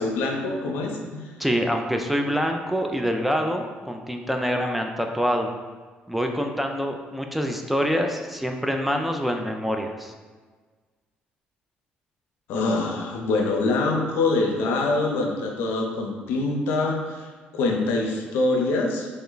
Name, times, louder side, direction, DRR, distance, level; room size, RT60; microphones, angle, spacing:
voice 1, 0.0-1.3 12.5-19.1, left 3 dB, 80° left, 1 dB, 0.6 m, -25 dB
voice 2, 1.4-5.5 6.1-10.1, equal, 5° right, 3 dB, 0.3 m, -25 dB
3.2 x 2.1 x 3.8 m, 1.4 s
supercardioid pair, 85°, 4 cm